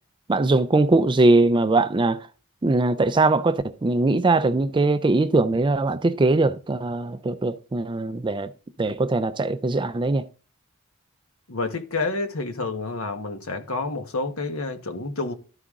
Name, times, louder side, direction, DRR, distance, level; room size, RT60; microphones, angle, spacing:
voice 1, 0.3-2.2 2.6-8.5 8.8-10.3, right 2 dB, 20° right, 0.4 m, -21 dB
voice 2, 11.5-15.3, left 3 dB, 65° left, 1.3 m, -29 dB
12.5 x 4.9 x 3.7 m
head